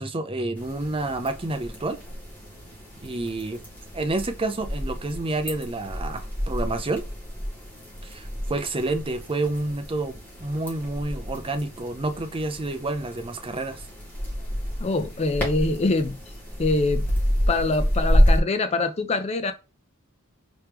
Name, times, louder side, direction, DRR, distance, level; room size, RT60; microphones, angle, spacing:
voice 1, 0.0-2.0 3.0-3.6 3.9-7.0 8.0-13.9, right 2 dB, 25° right, 0.6 m, -29 dB
sound 1, 0.6-18.4, equal, 10° left, 2.2 m, -29 dB
voice 2, 14.8-16.2 16.6-17.1 17.5-19.5, left 3 dB, 30° left, 0.5 m, -24 dB
4.6 x 3.0 x 3.5 m
head